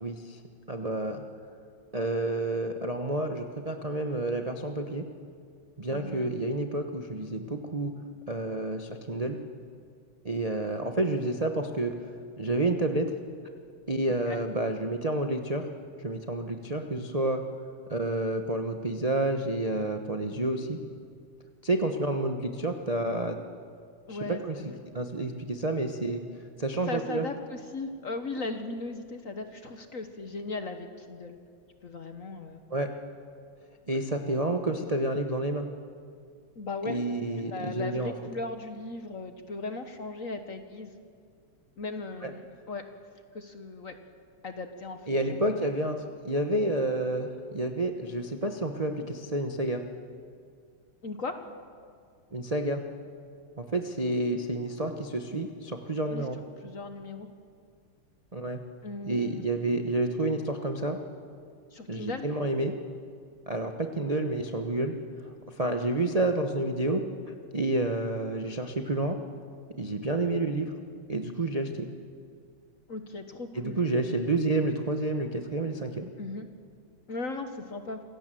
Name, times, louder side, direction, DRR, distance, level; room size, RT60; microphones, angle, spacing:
voice 1, 0.0-0.4 0.7-1.2 1.9-5.0 5.8-7.9 8.3-9.4 10.2-11.9 12.4-13.1 13.9-15.7 16.0-17.4 17.9-20.8 21.6-23.4 24.1-24.2 24.4-24.6 24.9-26.2 26.6-27.2 32.7-32.9 33.9-35.7 36.8-38.1 42.2-42.3 45.1-49.8 52.3-52.8 53.6-56.3 58.3-58.6 59.0-61.0 61.9-62.7 63.5-64.9 65.6-69.2 69.8-70.7 71.1-71.9 73.5-76.1, right 2 dB, 30° right, 4 dB, 0.6 m, -29 dB
voice 2, 5.9-6.3 14.1-14.4 24.1-24.8 26.9-31.4 31.8-32.6 36.6-37.0 37.5-40.9 41.8-42.9 43.3-44.0 44.4-45.0 45.3-45.7 51.0-51.4 56.1-56.3 56.6-57.3 58.8-59.4 61.7-62.3 72.9-73.8 76.2-76.5 77.1-78.0, left 3 dB, 45° left, 7 dB, 1.2 m, -37 dB
27.0 x 16.5 x 7.7 m, 2.2 s
omnidirectional pair, 2.4 m